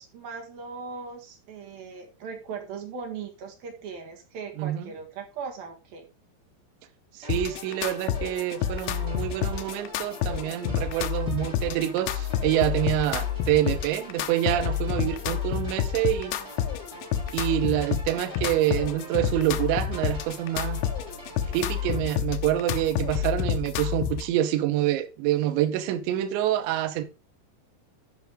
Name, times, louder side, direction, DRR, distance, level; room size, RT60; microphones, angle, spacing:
voice 1, 0.0-6.1, right 5 dB, 60° right, 3.3 m, -39 dB
voice 2, 4.6-4.9 7.2-16.3 17.3-20.8 21.5-27.0, right 13 dB, 85° right, 3.2 m, -26 dB
sound 1, 7.2-22.0, right 1 dB, 15° right, 3.9 m, -44 dB
sound 2, 7.3-24.3, left 10 dB, 90° left, 3.0 m, -29 dB
13.5 x 5.2 x 3.6 m
omnidirectional pair, 5.1 m